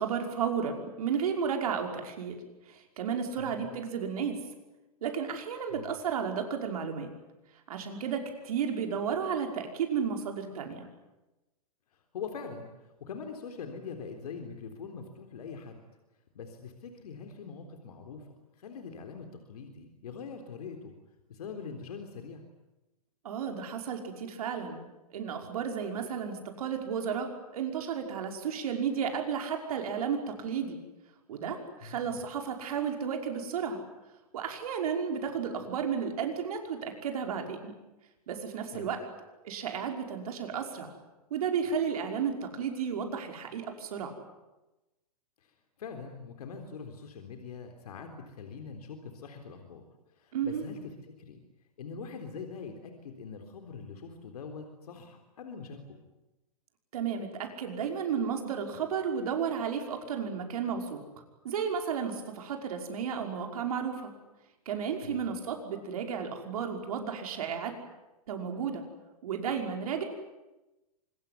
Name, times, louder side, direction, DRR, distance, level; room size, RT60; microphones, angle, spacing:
voice 1, 0.0-2.3 2.7-4.4 5.0-7.1 7.7-10.9 23.2-24.9 25.1-30.8 31.3-33.8 34.3-37.7 38.3-39.0 39.4-41.0 41.3-44.1 50.3-50.7 56.9-61.0 61.4-64.1 64.7-67.7 68.3-68.8 69.2-70.0, right 7 dB, 70° right, 4 dB, 5.6 m, -33 dB
voice 2, 12.1-12.7 13.0-15.8 16.4-18.3 18.6-20.9 21.3-22.5 31.8-32.2 38.7-38.9 45.8-49.8 50.2-50.8 51.2-51.4 51.8-56.0 65.0-65.2, left 5 dB, 75° left, 5 dB, 3.8 m, -43 dB
25.0 x 22.5 x 9.7 m, 1.0 s
hypercardioid pair, 135°, 19 cm